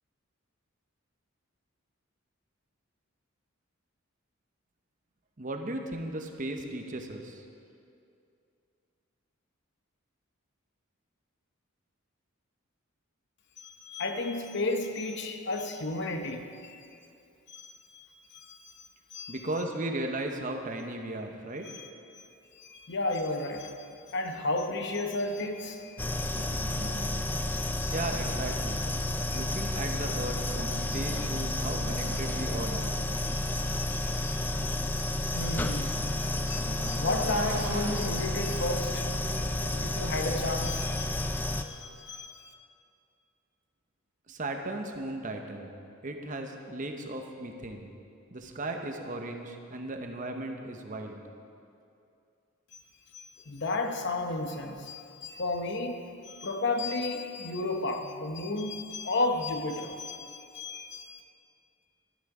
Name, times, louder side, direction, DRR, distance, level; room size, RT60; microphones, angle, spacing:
voice 1, 5.4-7.4 19.3-21.7 27.9-28.9 29.3-32.9 44.3-45.7 46.0-47.9 48.3-51.2, right 2 dB, 35° right, 4 dB, 0.8 m, -36 dB
voice 2, 13.6-16.8 17.5-18.8 19.1-19.4 21.6-21.9 22.5-26.1 27.6-28.0 29.3-29.4 30.9-31.0 33.2-42.5 53.1-61.2, left 2 dB, 50° left, 5 dB, 0.8 m, -34 dB
sound 1, 23.8-39.9, right 3 dB, 90° right, 1.0 m, -45 dB
sound 2, 26.0-41.6, left 2 dB, 10° left, 0.3 m, -31 dB
12.5 x 10.0 x 4.9 m, 2.5 s
head